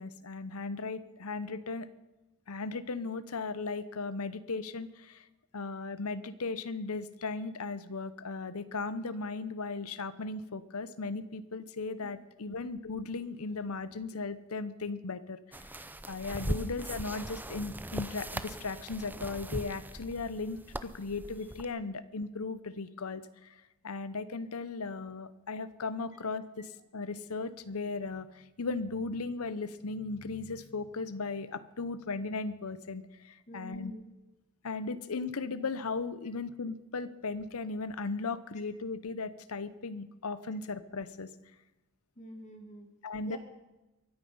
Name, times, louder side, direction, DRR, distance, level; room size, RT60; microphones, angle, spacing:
voice 1, 0.0-1.9 2.5-5.2 5.5-15.6 16.1-23.5 23.8-33.9 34.6-41.3 43.0-43.4, left 3 dB, 75° left, 15 dB, 0.8 m, -37 dB
sound 1, 15.5-21.6, right 1 dB, 10° right, 0.5 m, -40 dB
voice 2, 33.5-34.0 42.2-42.9 43.2-43.4, equal, 35° left, 5 dB, 2.3 m, -47 dB
23.5 x 8.9 x 5.5 m, 1.0 s
head